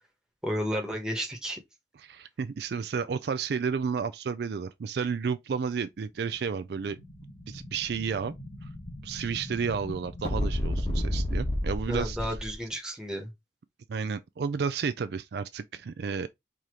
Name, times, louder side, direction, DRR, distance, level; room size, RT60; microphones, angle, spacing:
voice 1, 0.4-1.6 11.9-13.3, equal, 5° right, 1.1 m, -32 dB
voice 2, 2.0-7.0 7.5-8.3 8.6-8.7 9.0-12.4 13.9-16.3, right 6 dB, 60° right, 0.3 m, -32 dB
Explosion, 6.7-12.6, left 1 dB, 30° left, 1.2 m, -33 dB
4.9 x 2.9 x 3.7 m
head